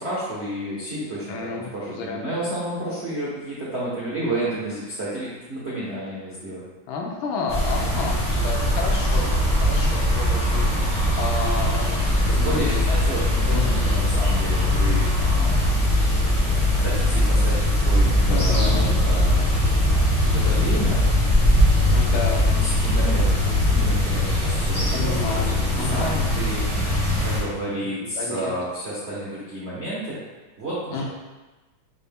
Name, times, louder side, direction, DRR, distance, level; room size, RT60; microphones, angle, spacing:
voice 1, 0.0-6.6 12.3-15.8 16.7-19.6 19.9-21.0 22.5-26.8 27.2-30.2 30.6-31.0, right 1 dB, 70° right, -8 dB, 0.6 m, -31 dB
voice 2, 1.3-2.2 6.9-12.0 12.3-12.8 13.1-13.2 13.5-13.9 18.2-19.0 21.9-22.5 24.9-26.2 27.8-28.5 30.9-31.0, left 4 dB, 75° left, 0 dB, 1.3 m, -31 dB
sound 1, 7.5-27.4, equal, 10° left, 0.3 m, -22 dB
sound 2, 11.9-24.0, left 4 dB, 55° left, 0.9 m, -24 dB
5.4 x 2.1 x 3.4 m, 1.2 s
omnidirectional pair, 2.4 m